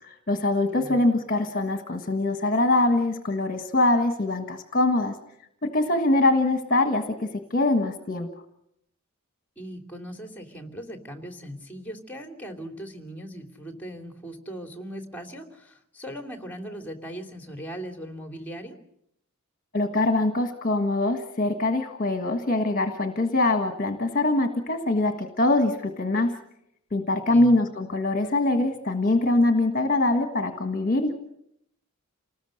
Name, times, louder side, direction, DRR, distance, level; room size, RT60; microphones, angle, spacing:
voice 1, 0.0-5.2 5.6-8.3 19.7-26.3 26.9-31.1, left 2 dB, 40° left, 6 dB, 1.5 m, -23 dB
voice 2, 0.7-1.0 9.6-18.8 27.3-27.5, equal, 5° left, 5 dB, 2.9 m, -39 dB
28.5 x 19.5 x 6.6 m, 0.77 s
head